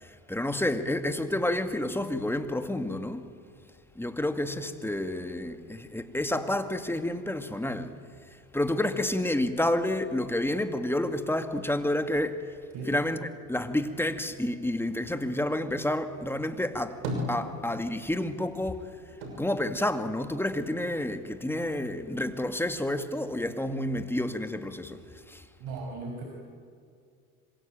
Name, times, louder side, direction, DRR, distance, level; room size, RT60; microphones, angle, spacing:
voice 1, 0.0-3.3 4.0-8.0 8.5-12.5 12.9-17.0 17.3-18.9 19.4-25.0 25.3-25.4, left 1 dB, 5° left, 2.2 m, -29 dB
sound 1, 16.7-18.1 18.4-20.8 21.1-22.0, equal, 85° right, 6.5 m, -38 dB
voice 2, 25.6-26.2, right 3 dB, 65° right, 6.0 m, -37 dB
26.0 x 23.0 x 9.1 m
hypercardioid pair, 85°, 43 cm